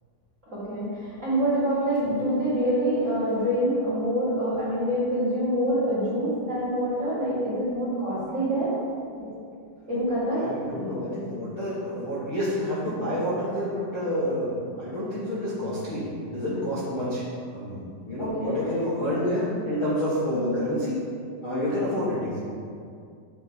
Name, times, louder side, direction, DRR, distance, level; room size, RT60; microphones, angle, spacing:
voice 1, 0.5-8.7 9.2-9.3 9.9-10.4 18.2-18.6 20.3-20.6, equal, 70° right, -11 dB, 0.7 m, -26 dB
voice 2, 10.4-17.2 17.5-21.0 21.4-22.4, equal, 90° left, -10 dB, 1.1 m, -29 dB
8.6 x 3.3 x 5.4 m, 2.4 s
omnidirectional pair, 4.7 m